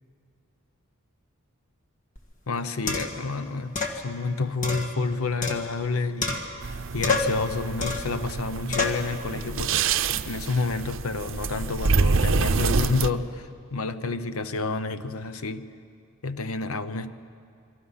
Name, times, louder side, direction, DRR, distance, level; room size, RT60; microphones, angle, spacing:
sound 1, 2.2-2.3 2.9-3.3 3.8-4.0 4.6-5.9 6.2-6.7 7.0-7.4 7.8-8.2 8.7-9.1, left 3 dB, 35° left, 1.9 m, -28 dB
voice 1, 2.5-15.7 16.2-17.1, left 3 dB, 90° left, 11 dB, 0.9 m, -29 dB
sound 2, 6.6-13.1, right 4 dB, 65° right, 0.6 m, -27 dB
27.5 x 24.0 x 5.7 m, 2.4 s
head